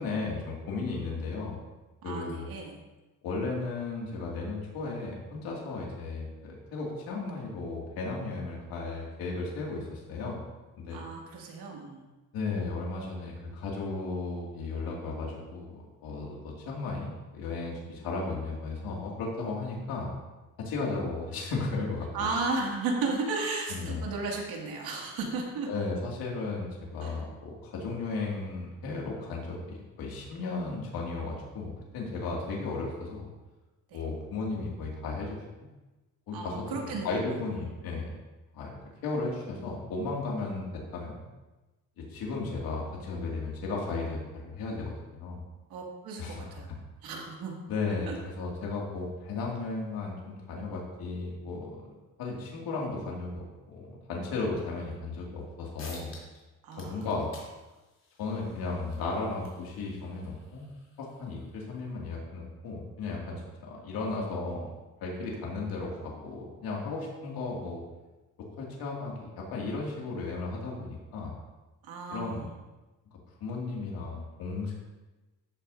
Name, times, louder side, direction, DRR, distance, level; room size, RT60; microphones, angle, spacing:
voice 1, 0.0-1.6 2.0-2.5 3.2-10.4 10.8-11.0 12.3-20.1 20.6-22.3 23.7-24.1 25.7-26.7 26.9-33.3 33.9-35.4 36.3-38.1 38.5-38.8 39.0-41.2 42.0-45.4 46.2-46.5 47.7-51.8 52.2-56.1 56.8-57.3 58.2-60.6 61.0-64.7 65.0-67.8 68.6-71.3 72.1-72.4 73.4-74.8, left 3 dB, 75° left, -3 dB, 2.4 m, -35 dB
voice 2, 2.0-2.8 10.9-12.0 22.1-25.7 27.0-27.1 33.9-34.0 36.3-37.1 45.7-46.7 47.0-47.6 48.1-48.2 56.6-57.1 71.8-72.5, right 3 dB, 75° right, -1 dB, 2.4 m, -34 dB
sound 1, 55.4-55.5 55.8-56.4 56.7-61.8, left 3 dB, 45° left, 3.3 m, -53 dB
13.0 x 8.0 x 2.7 m, 1.1 s
cardioid pair, 125°, 36 cm